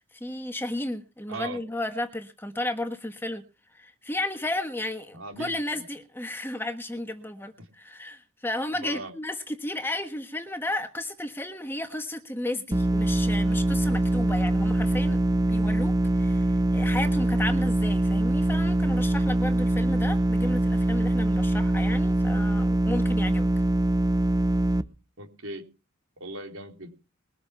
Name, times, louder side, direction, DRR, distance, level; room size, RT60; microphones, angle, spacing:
voice 1, 0.1-3.4 3.7-23.5, left 1 dB, 10° left, 1.4 m, -33 dB
voice 2, 1.3-1.6 5.1-5.8 7.6-7.7 8.7-9.1 25.2-25.6 26.2-26.9, right 2 dB, 70° right, 3.8 m, -39 dB
sound 1, 12.7-24.8, right 1 dB, 15° right, 0.9 m, -23 dB
21.5 x 7.8 x 5.9 m
head